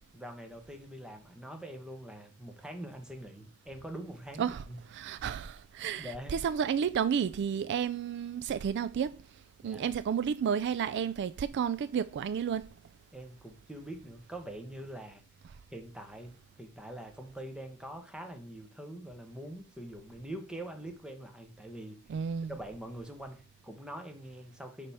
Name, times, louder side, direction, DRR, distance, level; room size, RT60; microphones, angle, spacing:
voice 1, 0.1-4.8 6.0-6.4 9.6-9.9 13.1-15.2 15.7-22.2 22.5-24.9, right 1 dB, 5° right, 1.1 m, -44 dB
voice 2, 4.4-9.2 9.6-12.7 22.1-22.5, right 7 dB, 55° right, 0.3 m, -31 dB
10.5 x 3.5 x 4.2 m
head